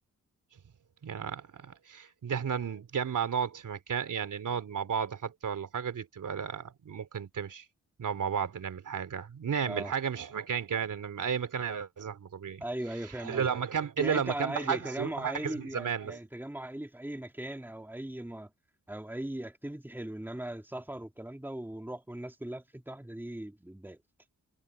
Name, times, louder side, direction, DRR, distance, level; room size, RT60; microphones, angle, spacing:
voice 1, 1.0-7.6 8.0-12.6 13.2-16.2, right 7 dB, 75° right, 3.2 m, -33 dB
voice 2, 12.6-13.5 14.0-18.5 18.9-24.0, right 1 dB, 5° right, 2.5 m, -38 dB
cardioid pair, 85°, 31 cm